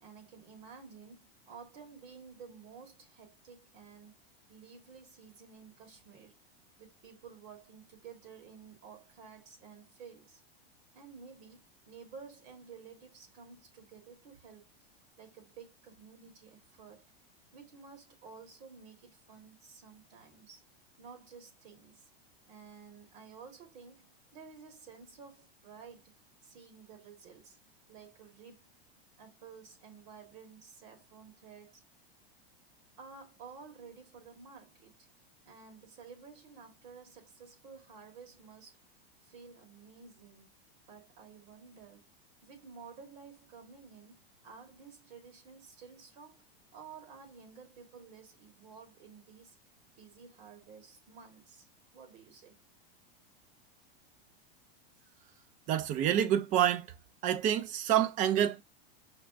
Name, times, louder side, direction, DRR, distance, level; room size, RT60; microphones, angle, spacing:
voice 1, 0.0-6.4 6.8-10.4 10.9-14.7 15.2-17.1 17.5-20.6 21.0-22.1 22.5-24.1 24.3-26.1 26.4-27.6 27.9-28.6 29.2-31.8 33.0-35.1 35.4-38.8 39.2-40.6 40.9-42.1 42.4-46.5 46.7-49.5 50.0-51.7 51.9-52.6, right 5 dB, 50° right, 1.6 m, -53 dB
voice 2, 55.7-56.9 57.2-58.6, right 10 dB, 25° right, 0.4 m, -27 dB
5.8 x 2.1 x 2.5 m
supercardioid pair, 130°, 31 cm